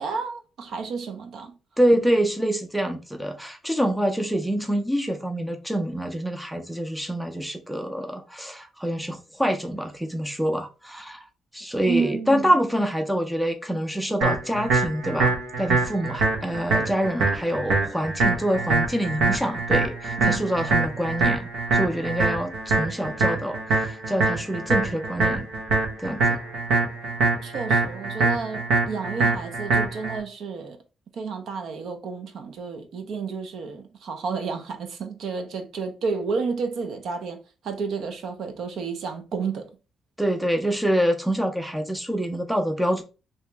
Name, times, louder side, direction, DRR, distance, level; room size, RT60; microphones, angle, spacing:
voice 1, 0.0-1.6 11.9-12.5 20.0-20.5 27.4-30.8 31.1-39.7, right 5 dB, 55° right, 0.5 m, -31 dB
voice 2, 1.8-11.3 11.5-25.5 26.0-26.4 40.2-43.0, equal, ahead, 0.4 m, -26 dB
sound 1, 14.2-30.2, right 3 dB, 90° right, 1.0 m, -24 dB
2.9 x 2.8 x 3.3 m
cardioid pair, 180°, 0 cm